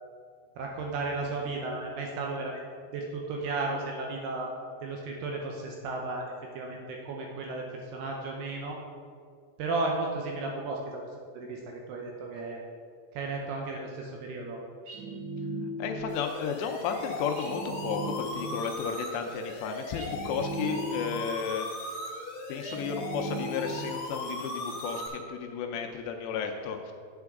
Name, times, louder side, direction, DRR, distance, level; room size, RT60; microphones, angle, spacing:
voice 1, 0.6-2.6 2.9-4.5 4.8-8.8 9.6-11.1 11.3-12.6 13.1-14.6, right 3 dB, 75° right, 0 dB, 2.4 m, -34 dB
sound 1, 14.9-16.2 17.4-18.7 20.0-21.3 22.6-24.0, right 1 dB, 60° right, 2.4 m, -37 dB
voice 2, 15.8-21.7 22.5-26.9, left 6 dB, 80° left, 4 dB, 2.7 m, -33 dB
sound 2, 16.1-25.1, left 1 dB, 55° left, 2.1 m, -38 dB
8.8 x 8.7 x 3.5 m, 2.1 s
omnidirectional pair, 5.2 m